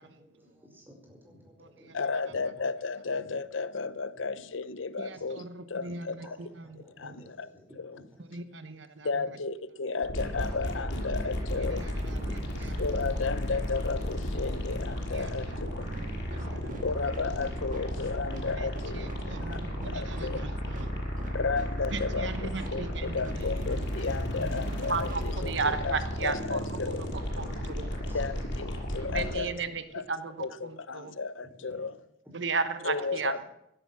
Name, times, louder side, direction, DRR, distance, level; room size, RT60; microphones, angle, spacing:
voice 1, 0.0-2.0 2.6-2.7 3.2-3.3 4.1-4.3 5.1-5.2 6.2-8.4 9.9-10.4 12.3-12.8 15.6-15.7 19.0-20.5 21.1-21.3 27.4-28.5 29.2-30.0 30.4-30.5 31.4-31.9 32.2-32.3 32.9-33.4, equal, 10° right, 5.1 m, -53 dB
voice 2, 1.9-6.2 6.9-7.5 7.8-8.0 9.0-11.9 12.8-15.5 16.8-19.1 19.5-19.6 19.8-20.4 21.3-27.1 28.1-29.6 29.9-30.0 30.4-31.9 32.8-33.4, left 4 dB, 80° left, 0.8 m, -33 dB
voice 3, 5.0-5.5 5.8-6.1 8.3-9.1 15.2-15.3 16.4-16.6 19.9-20.3 21.9-23.2 24.9-26.6 27.4-27.9 29.1-29.7 30.1-30.3 30.9-31.1 32.3-33.4, right 4 dB, 65° right, 1.0 m, -33 dB
sound 1, 10.0-29.4, equal, 65° left, 6.1 m, -34 dB
sound 2, 15.9-26.0, right 1 dB, 45° right, 1.6 m, -47 dB
16.0 x 12.0 x 6.0 m
head